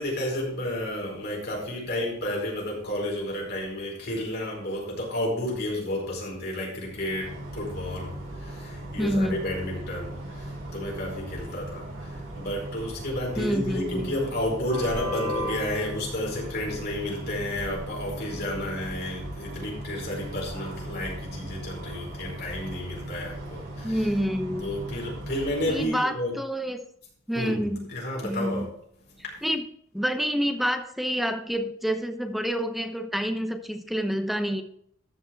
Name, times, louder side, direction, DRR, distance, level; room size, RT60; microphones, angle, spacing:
voice 1, 0.0-24.1 24.6-26.3 27.3-28.7 29.2-29.4, left 1 dB, 55° left, -2 dB, 4.8 m, -31 dB
sound 1, 6.8-25.9, right 1 dB, 65° right, 4.7 m, -37 dB
voice 2, 9.0-9.5 13.4-14.1 23.8-24.6 25.6-26.8 27.3-27.9 28.2-28.7 29.4-29.6 29.9-34.6, equal, ahead, 7 dB, 0.9 m, -28 dB
13.5 x 5.8 x 4.5 m, 0.66 s
head